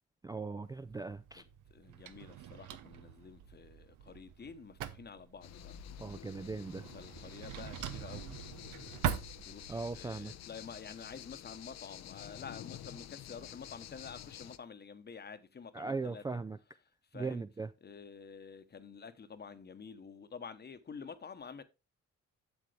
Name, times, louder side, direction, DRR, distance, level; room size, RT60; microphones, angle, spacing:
voice 1, 0.2-1.4 6.0-6.8 9.7-10.3 15.7-16.6 17.1-17.7, right 4 dB, 15° right, 0.4 m, -39 dB
Drawer open or close, 0.6-10.0, right 9 dB, 90° right, 0.8 m, -43 dB
voice 2, 1.3-5.8 6.9-8.4 9.4-16.4 17.1-17.5 17.8-21.6, left 6 dB, 35° left, 1.0 m, -49 dB
sound 1, 5.4-14.6, left 11 dB, 60° left, 0.6 m, -49 dB
7.9 x 7.3 x 3.3 m
cardioid pair, 90°, 30 cm